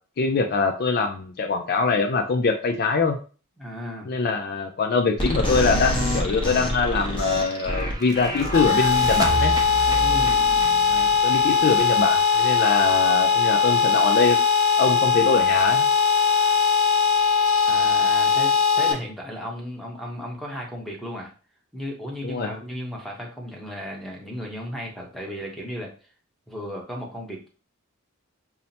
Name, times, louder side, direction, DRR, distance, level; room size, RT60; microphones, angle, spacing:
voice 1, 0.2-3.2 4.1-9.5 10.9-14.4 14.8-15.9 22.2-22.5, left 4 dB, 50° left, 5 dB, 0.4 m, -23 dB
voice 2, 3.6-4.1 10.0-10.4 17.7-21.3 21.7-25.9 26.5-27.5, equal, ahead, -2 dB, 0.9 m, -35 dB
sound 1, 5.2-11.6, equal, 25° left, 0.9 m, -28 dB
sound 2, 6.7-12.4, right 2 dB, 20° right, 0.4 m, -32 dB
sound 3, 8.5-18.9, left 6 dB, 65° left, 0.9 m, -20 dB
5.5 x 2.1 x 2.7 m, 0.37 s
head